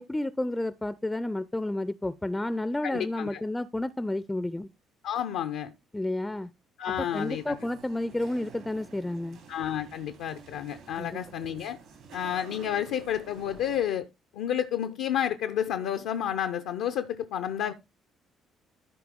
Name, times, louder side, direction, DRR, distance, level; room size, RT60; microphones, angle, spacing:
voice 1, 0.0-4.7 5.9-6.5 7.0-9.4 11.0-11.2, left 1 dB, 10° left, 0.5 m, -31 dB
voice 2, 2.8-3.4 5.0-5.7 6.8-7.6 9.5-11.8 12.1-14.1 14.3-17.7, left 10 dB, 65° left, 0.5 m, -30 dB
sound 1, 6.9-13.9, right 4 dB, 65° right, 2.8 m, -50 dB
13.0 x 4.7 x 3.6 m
figure-of-eight pair, 45°, 0 cm